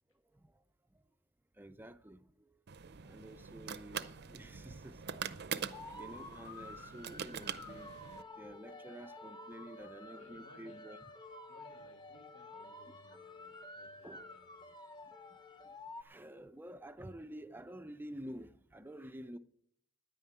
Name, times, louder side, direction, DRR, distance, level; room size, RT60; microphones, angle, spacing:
voice 1, 1.6-2.3 2.7-5.0 5.7-7.9 8.4-11.0 13.1-13.2 14.0-14.3 16.0-19.4, right 1 dB, 10° right, 0.4 m, -50 dB
sound 1, 2.7-8.2, right 7 dB, 55° right, 0.6 m, -44 dB
sound 2, 5.7-16.0, left 2 dB, 25° left, 1.0 m, -51 dB
voice 2, 10.1-10.8 11.5-14.8, left 2 dB, 90° left, 1.4 m, -62 dB
10.0 x 9.3 x 8.0 m
head